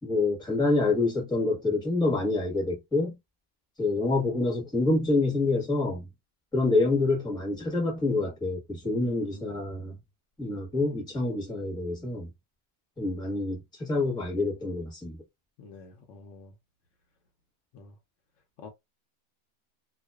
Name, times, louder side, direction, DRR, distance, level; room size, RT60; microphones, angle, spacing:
voice 1, 0.0-3.2 3.8-6.1 6.5-10.0 10.4-12.3 13.0-15.2, left 2 dB, 5° left, 0.8 m, -27 dB
voice 2, 8.9-9.6 15.6-16.5 17.7-18.0 18.6-18.7, left 4 dB, 70° left, 0.9 m, -47 dB
2.4 x 2.3 x 2.2 m
omnidirectional pair, 1.5 m